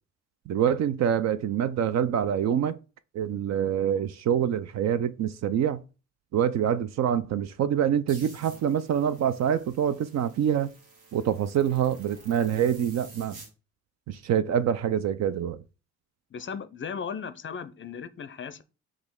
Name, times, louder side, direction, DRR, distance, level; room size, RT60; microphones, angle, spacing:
voice 1, 0.5-2.8 3.1-5.8 6.3-10.7 11.1-13.4 14.1-15.6, right 9 dB, 45° right, 0.5 m, -26 dB
sound 1, 8.1-13.5, right 3 dB, 65° right, 1.6 m, -50 dB
voice 2, 16.3-18.6, left 6 dB, 30° left, 0.5 m, -36 dB
6.1 x 2.4 x 3.6 m
hypercardioid pair, 55°, 38 cm